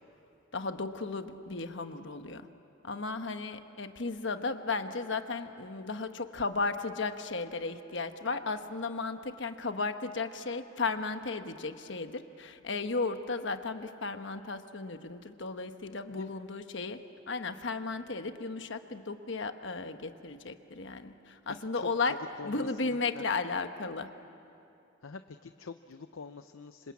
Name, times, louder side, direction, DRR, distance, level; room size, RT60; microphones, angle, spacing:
voice 1, 0.5-2.5 2.8-17.0 17.3-24.1, left 3 dB, 60° left, 8 dB, 1.1 m, -35 dB
voice 2, 21.7-23.2 25.0-26.9, left 4 dB, 80° left, 9 dB, 0.6 m, -46 dB
27.0 x 26.0 x 8.5 m, 2.8 s
head